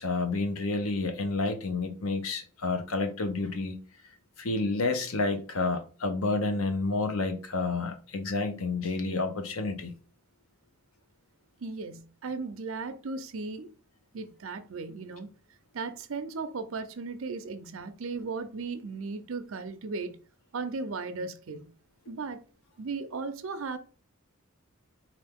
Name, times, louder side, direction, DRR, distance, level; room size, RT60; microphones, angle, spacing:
voice 1, 0.0-3.8 4.4-9.9, left 3 dB, 75° left, 0.8 m, -30 dB
voice 2, 11.6-13.7 14.1-15.3 15.7-20.2 20.5-21.7 22.1-22.4 22.8-23.8, right 4 dB, 70° right, 0.6 m, -36 dB
4.4 x 2.5 x 3.5 m
head